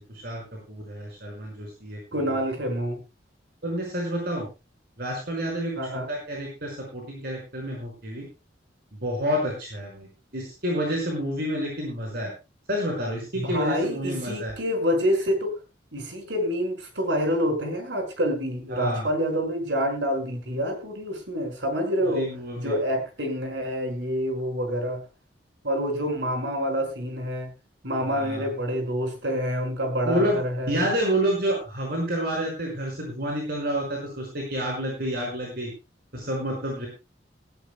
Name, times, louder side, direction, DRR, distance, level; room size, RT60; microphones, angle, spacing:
voice 1, 0.1-0.4 0.7-2.0 3.6-4.5 5.0-5.8 6.1-8.2 9.0-12.3 12.7-14.5 18.7-19.1 22.0-22.7 28.1-28.5 30.0-30.4 30.7-35.7 36.1-36.9, equal, 60° right, -1 dB, 5.4 m, -29 dB
voice 2, 2.1-3.0 5.8-6.1 13.3-15.5 15.9-22.3 22.6-25.0 25.6-27.5 27.8-30.8, equal, 85° right, 5 dB, 5.4 m, -27 dB
18.5 x 16.5 x 2.2 m, 0.28 s
head